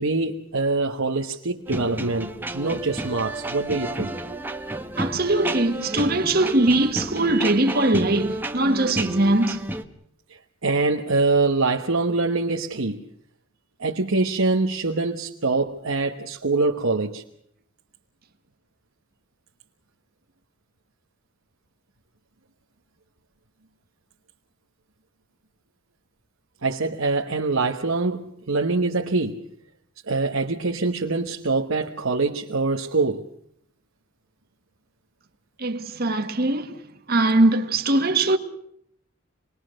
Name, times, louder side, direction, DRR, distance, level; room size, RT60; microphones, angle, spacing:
voice 1, 0.0-4.2 10.6-13.1 13.8-17.2 26.6-29.4 30.1-33.3, right 3 dB, 85° right, 1.3 m, -24 dB
sound 1, 1.7-9.8, right 1 dB, 10° right, 1.1 m, -31 dB
voice 2, 5.0-9.7 35.6-36.8 37.1-38.4, right 2 dB, 45° right, 1.7 m, -21 dB
26.5 x 20.5 x 6.5 m
head